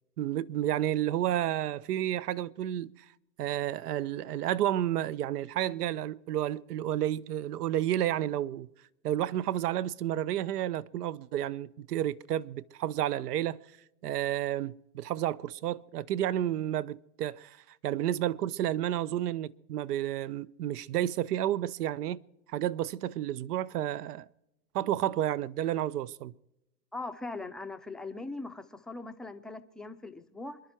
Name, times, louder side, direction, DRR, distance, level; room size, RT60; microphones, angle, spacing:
voice 1, 0.2-2.9 3.4-8.7 9.0-13.6 14.0-17.6 17.8-22.2 22.5-24.3 24.7-26.3, right 12 dB, 80° right, 0.8 m, -31 dB
voice 2, 26.9-30.6, left 3 dB, ahead, 0.5 m, -40 dB
27.0 x 11.0 x 4.4 m
hypercardioid pair, 125°, 46 cm